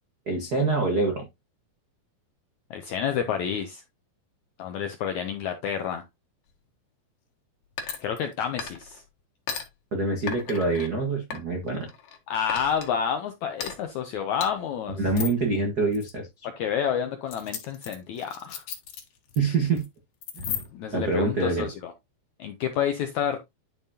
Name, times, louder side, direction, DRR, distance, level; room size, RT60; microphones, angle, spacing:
voice 1, 0.3-1.2 9.9-11.9 15.0-16.3 19.3-19.8 20.3-20.6 20.9-21.7, right 3 dB, 80° right, 0.8 m, -25 dB
voice 2, 2.7-3.8 4.6-6.0 8.0-9.0 12.3-15.0 16.6-18.6 20.7-21.9 22.4-23.4, left 8 dB, 80° left, 1.7 m, -29 dB
sound 1, 7.8-8.3 8.6-9.0 9.5-9.6 10.3-10.9 11.3-12.2 12.5-12.9 13.6-13.7 14.4-14.5 15.1-15.4 15.9-16.1 17.3-19.4 19.7-19.9 20.2-20.9, left 7 dB, 65° left, 3.1 m, -35 dB
10.5 x 5.5 x 2.8 m
omnidirectional pair, 4.4 m